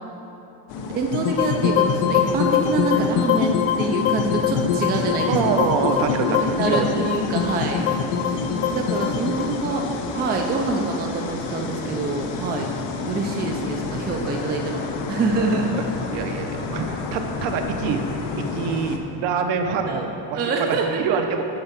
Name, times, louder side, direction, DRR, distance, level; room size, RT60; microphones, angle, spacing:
sound 1, 0.7-19.0, left 4 dB, 75° left, 0.9 m, -30 dB
voice 1, 0.8-5.4 6.3-7.8 8.7-12.7 13.1-15.7 19.8-20.1 20.3-21.0, right 3 dB, 20° right, 1 dB, 0.4 m, -26 dB
sound 2, 1.1-11.3, left 8 dB, 55° left, 0.5 m, -24 dB
voice 2, 5.3-6.9 9.7-9.8 11.6-11.9 13.6-13.7 14.2-14.3 15.4-15.8 16.1-21.5, right 6 dB, 65° right, 5 dB, 0.9 m, -26 dB
10.0 x 4.5 x 5.9 m, 2.9 s
cardioid pair, 170°, 47 cm